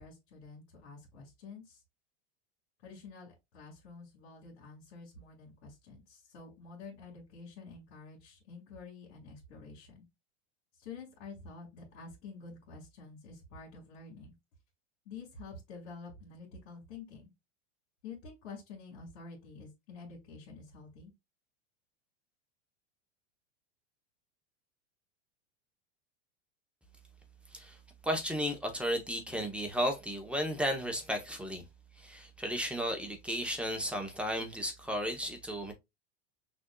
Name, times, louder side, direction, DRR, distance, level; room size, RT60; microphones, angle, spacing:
voice 1, 0.0-1.8 2.8-10.1 10.7-14.3 15.1-17.3 18.0-21.1, left 4 dB, 65° left, 2.1 m, -49 dB
voice 2, 28.0-31.6 32.0-35.7, equal, 5° right, 0.8 m, -34 dB
6.1 x 2.7 x 2.3 m
supercardioid pair, 125°, 35 cm